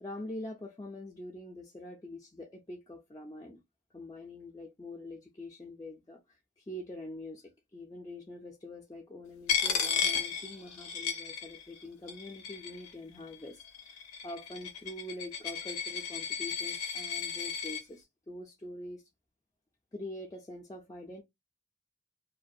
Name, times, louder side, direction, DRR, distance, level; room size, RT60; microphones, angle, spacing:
voice 1, 0.0-3.6 3.9-19.1 19.9-21.2, left 1 dB, 15° left, 0.3 m, -45 dB
Coin (dropping), 9.5-11.8 12.1-12.9 13.6-17.8, left 7 dB, 85° left, 0.5 m, -34 dB
2.4 x 2.1 x 2.5 m
head